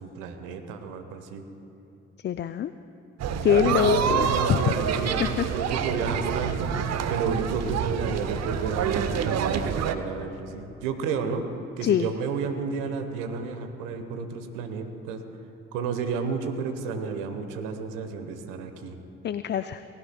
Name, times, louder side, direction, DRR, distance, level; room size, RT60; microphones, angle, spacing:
voice 1, 0.0-1.4 3.5-6.7 7.1-11.5 11.8-15.2 15.7-19.0, right 5 dB, 75° right, 7 dB, 1.1 m, -31 dB
voice 2, 2.2-2.7 3.4-4.7 5.2-5.4 11.8-12.1 19.2-19.8, left 9 dB, 35° left, 11 dB, 0.4 m, -24 dB
sound 1, 3.2-10.0, right 7 dB, 55° right, 0.8 m, -27 dB
19.0 x 16.5 x 2.2 m, 2.9 s
hypercardioid pair, 45°, 32 cm